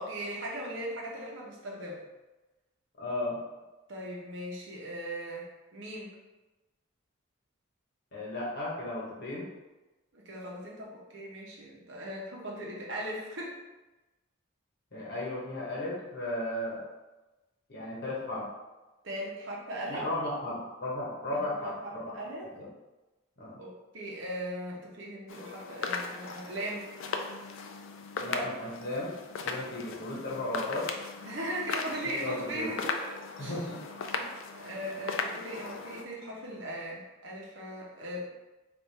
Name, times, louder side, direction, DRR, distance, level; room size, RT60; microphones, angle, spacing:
voice 1, 0.0-2.0 3.9-6.1 10.1-13.6 19.0-20.1 21.3-22.5 23.6-26.9 31.2-33.7 34.2-38.3, right 1 dB, 60° right, -3 dB, 0.9 m, -39 dB
voice 2, 3.0-3.4 8.1-9.5 14.9-16.8 17.7-18.5 19.9-22.2 22.6-22.7 23.4-23.6 28.2-29.2 29.4-30.9 32.0-32.7 33.4-33.8 34.1-34.3, left 1 dB, 50° left, -5 dB, 1.2 m, -35 dB
sound 1, 25.3-36.0, left 4 dB, 65° left, 0.4 m, -38 dB
3.5 x 2.6 x 4.1 m, 1.1 s
head